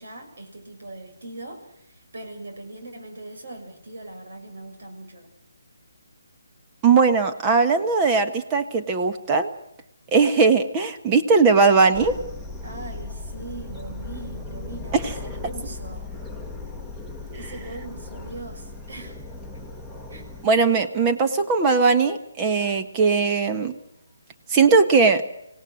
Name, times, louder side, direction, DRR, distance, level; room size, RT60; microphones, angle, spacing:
voice 1, 0.0-5.3 12.6-16.0 17.3-19.2 20.1-20.3, right 2 dB, 60° right, 4 dB, 6.0 m, -40 dB
voice 2, 6.8-9.5 10.1-12.2 20.4-23.7 24.5-25.2, right 4 dB, 20° right, 7 dB, 1.5 m, -19 dB
sound 1, 11.9-20.5, left 2 dB, 5° right, 1.9 m, -37 dB
27.0 x 17.5 x 6.4 m, 0.80 s
figure-of-eight pair, 145°, 0 cm